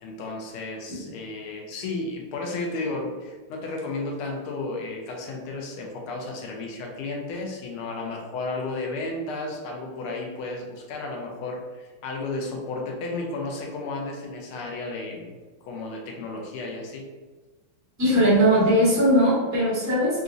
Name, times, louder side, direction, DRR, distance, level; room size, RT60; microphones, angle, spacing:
voice 1, 0.0-17.1, left 2 dB, 90° left, 0 dB, 1.5 m, -33 dB
voice 2, 18.0-20.2, equal, 15° right, -9 dB, 0.7 m, -19 dB
4.0 x 2.4 x 2.5 m, 1.3 s
omnidirectional pair, 2.4 m